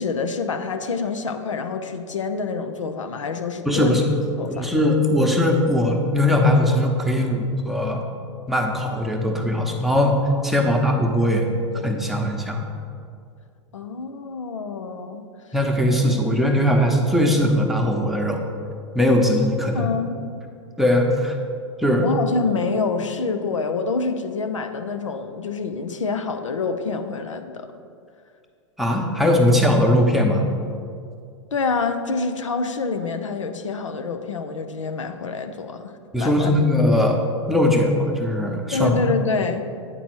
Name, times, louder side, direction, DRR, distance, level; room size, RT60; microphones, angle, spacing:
voice 1, 0.0-4.0 4.4-4.7 10.6-10.8 13.7-15.2 19.7-20.2 22.0-27.7 31.5-36.5 38.7-39.6, left 4 dB, 85° left, 7 dB, 0.6 m, -26 dB
voice 2, 3.7-4.0 4.5-8.0 8.5-10.2 10.4-11.5 11.8-12.6 15.5-18.4 18.9-19.9 20.8-21.4 21.8-22.1 28.8-30.4 36.1-37.2 37.5-38.9, left 1 dB, ahead, 1 dB, 0.9 m, -20 dB
9.0 x 4.0 x 6.1 m, 2.3 s
hypercardioid pair, 105°, 16 cm